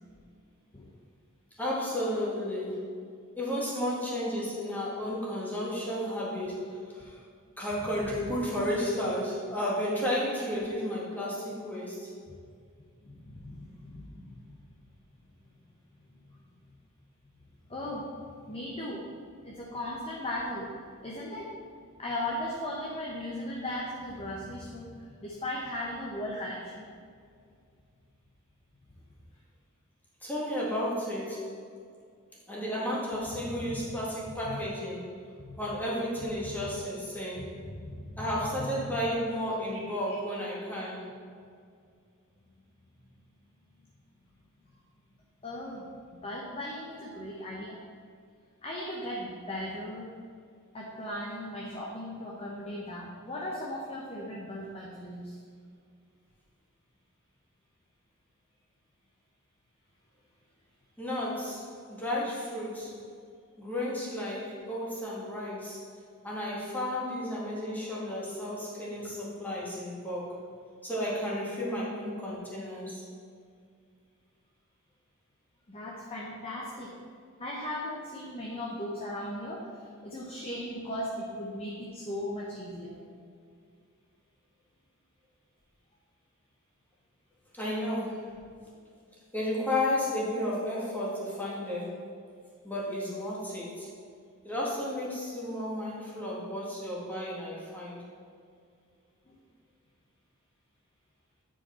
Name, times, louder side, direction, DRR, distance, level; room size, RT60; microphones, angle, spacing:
voice 1, 1.6-2.8 3.4-7.2 7.6-12.1 30.2-31.6 32.5-35.1 35.6-37.5 38.2-41.1 61.0-63.0 63.6-65.9 66.2-70.4 70.8-73.0 87.5-88.4 89.3-92.1 92.6-93.9 94.4-98.0, left 1 dB, 10° left, -6 dB, 1.7 m, -33 dB
voice 2, 13.0-14.6 16.3-16.4 17.7-18.1 18.5-19.1 19.4-20.7 21.0-21.5 22.0-26.9 33.4-33.8 34.4-34.6 35.4-35.6 36.4-36.7 37.4-39.0 40.1-40.2 45.4-47.8 48.6-50.1 50.7-55.4 75.7-76.9 77.4-83.0 99.3-99.4, left 1 dB, 25° left, -4 dB, 0.9 m, -37 dB
9.5 x 4.9 x 4.3 m, 2.2 s
head